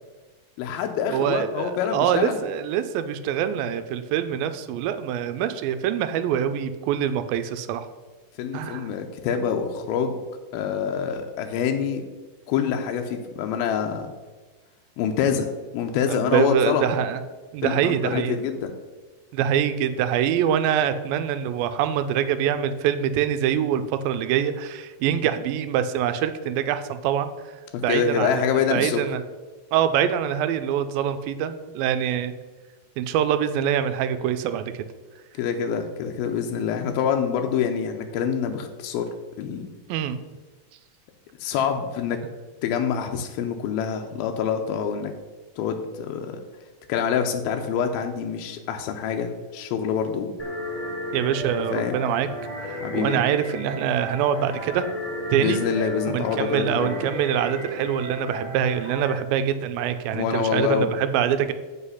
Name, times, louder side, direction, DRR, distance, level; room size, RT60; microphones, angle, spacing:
voice 1, 0.6-2.4 8.4-10.2 10.5-12.0 12.5-14.1 15.0-15.5 15.7-16.9 17.6-18.7 27.7-29.0 35.4-39.1 39.4-39.7 41.4-42.2 42.6-45.1 45.6-46.4 46.9-50.3 51.7-52.0 52.8-53.2 55.4-57.0 60.1-60.9, left 7 dB, 85° left, 4 dB, 2.5 m, -26 dB
voice 2, 1.1-7.9 8.5-8.9 16.1-17.2 17.5-18.4 19.3-27.3 27.8-28.4 28.7-29.2 29.7-32.3 33.0-34.9 39.9-40.2 51.1-52.3 52.6-54.9 55.3-55.6 56.1-61.5, right 9 dB, 85° right, 10 dB, 2.4 m, -24 dB
sound 1, 50.4-59.1, equal, 20° left, 0.9 m, -34 dB
8.1 x 5.8 x 5.6 m, 1.3 s
omnidirectional pair, 4.2 m